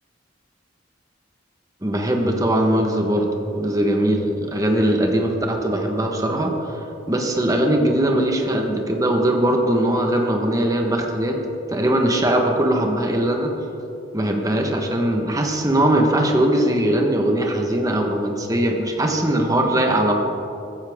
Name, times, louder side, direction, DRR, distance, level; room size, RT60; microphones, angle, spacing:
voice 1, 1.8-3.3 3.5-6.6 7.1-11.4 11.7-13.5 14.1-20.1, right 1 dB, 20° right, 2 dB, 1.3 m, -20 dB
15.0 x 14.0 x 3.7 m, 2.8 s
head